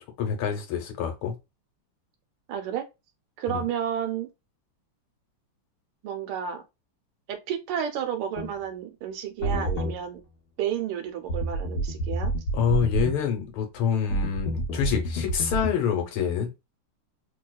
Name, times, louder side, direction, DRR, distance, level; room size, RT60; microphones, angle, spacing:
voice 1, 0.2-1.3 3.5-3.6 12.5-16.5, left 8 dB, 80° left, 1.8 m, -27 dB
voice 2, 2.5-2.8 3.4-4.3 6.0-6.6 7.3-10.2 10.6-12.3, right 9 dB, 80° right, 1.5 m, -31 dB
sound 1, 8.4-8.5 9.4-10.0 11.3-13.1 14.1-15.7, right 1 dB, 65° left, 1.3 m, -28 dB
3.3 x 2.9 x 2.3 m
omnidirectional pair, 2.4 m